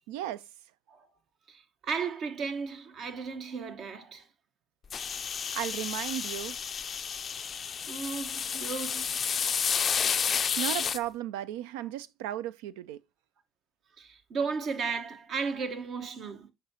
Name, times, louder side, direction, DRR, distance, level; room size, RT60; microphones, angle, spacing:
voice 1, 0.1-0.5 5.2-6.6 10.6-13.0, right 12 dB, 80° right, 0.4 m, -35 dB
voice 2, 1.5-4.3 7.3-7.6 7.9-9.5 9.9-10.0 14.0-16.5, right 5 dB, 60° right, 1.1 m, -35 dB
sound 1, 4.9-11.0, left 7 dB, 45° left, 0.4 m, -31 dB
6.7 x 5.6 x 2.8 m
hypercardioid pair, 60°, 0 cm